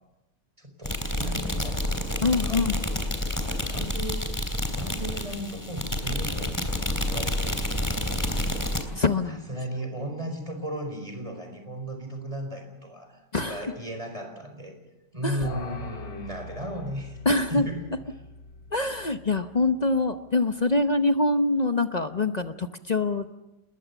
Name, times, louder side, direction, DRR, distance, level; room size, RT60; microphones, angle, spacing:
voice 1, 0.6-2.8 3.4-4.4 4.7-6.5 6.9-7.8 9.3-14.7 15.1-17.2 17.5-17.9, right 1 dB, 15° right, 5 dB, 4.7 m, -36 dB
sound 1, 0.8-8.8, left 1 dB, 10° left, 3.1 m, -29 dB
voice 2, 2.2-2.8 9.0-9.5 13.3-13.6 15.2-15.5 17.2-17.7 18.7-23.3, left 3 dB, 35° left, 8 dB, 0.6 m, -24 dB
sound 2, 15.4-20.9, left 3 dB, 85° left, 2.9 m, -43 dB
28.5 x 21.0 x 7.1 m, 1.0 s
omnidirectional pair, 1.9 m